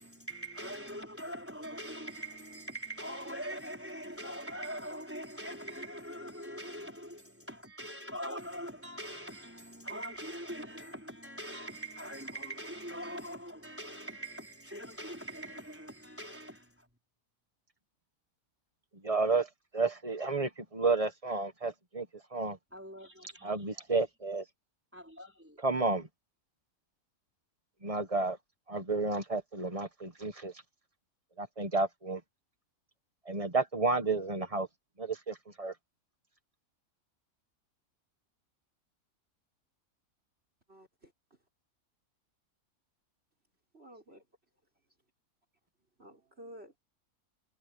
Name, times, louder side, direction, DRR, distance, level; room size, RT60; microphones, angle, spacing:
voice 1, 0.0-16.9 22.7-23.6 24.9-25.6, right 1 dB, 10° right, 4.8 m, -42 dB
voice 2, 19.0-19.5 19.7-22.1 22.3-22.6 23.4-24.4 25.6-26.1 27.8-28.4 28.7-30.5 31.4-32.2 33.3-34.7 35.0-35.7, right 3 dB, 25° right, 1.3 m, -31 dB
voice 3, 40.7-41.1 43.7-44.2 46.0-46.8, equal, 40° right, 6.6 m, -52 dB
omnidirectional pair, 1.6 m